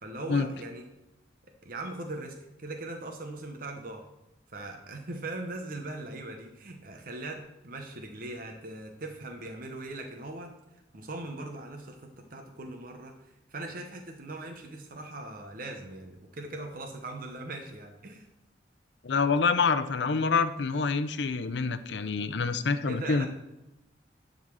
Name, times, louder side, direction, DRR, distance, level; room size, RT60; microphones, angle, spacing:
voice 1, 0.0-0.8 1.6-4.1 4.5-10.5 10.9-18.3 22.9-23.3, right 2 dB, 50° right, 3 dB, 0.9 m, -40 dB
voice 2, 19.0-23.3, left 4 dB, 75° left, 12 dB, 0.6 m, -27 dB
10.5 x 4.0 x 6.2 m, 0.95 s
head